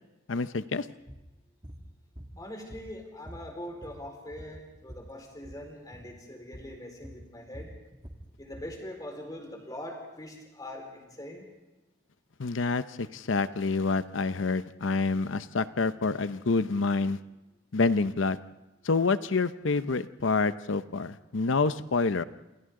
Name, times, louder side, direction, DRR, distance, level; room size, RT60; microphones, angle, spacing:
voice 1, 0.3-0.9 12.4-17.2 17.7-18.4 18.8-22.2, left 4 dB, 80° left, 13 dB, 0.7 m, -27 dB
sound 1, 1.1-1.3 1.6-1.8 2.2-3.0 3.3-5.1 5.4-5.6 5.9-6.1 6.5-6.7 7.0-8.7, equal, 25° right, 2.1 m, -46 dB
voice 2, 2.4-7.7 8.4-11.5, left 1 dB, 20° left, 2 dB, 4.6 m, -42 dB
28.0 x 27.5 x 3.8 m, 1.0 s
head